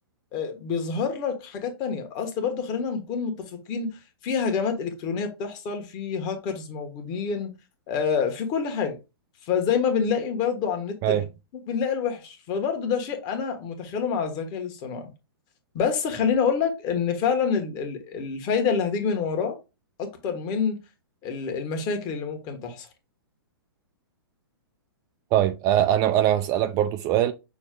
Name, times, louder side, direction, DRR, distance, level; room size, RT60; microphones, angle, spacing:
voice 1, 0.3-7.5 7.9-9.0 9.4-11.2 11.7-15.1 15.7-19.6 20.0-20.8 21.2-22.9, left 6 dB, 30° left, 1.3 m, -27 dB
voice 2, 25.3-27.3, right 12 dB, 30° right, 0.3 m, -22 dB
6.1 x 2.3 x 3.7 m
hypercardioid pair, 120°, 13 cm